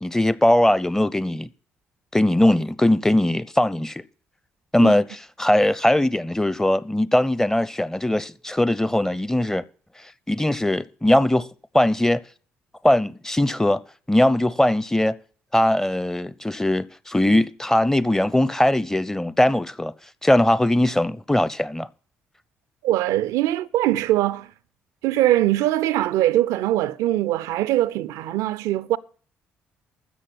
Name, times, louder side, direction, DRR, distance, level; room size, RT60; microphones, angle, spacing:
voice 1, 0.0-1.5 2.1-4.0 4.7-5.1 5.4-9.6 10.3-11.5 11.7-12.2 12.8-13.8 14.1-15.2 15.5-19.9 20.2-21.9, left 1 dB, 10° left, 0.7 m, -20 dB
voice 2, 22.8-24.5 25.0-29.0, right 14 dB, 65° right, 0.5 m, -22 dB
13.0 x 7.7 x 5.9 m
hypercardioid pair, 45°, 6 cm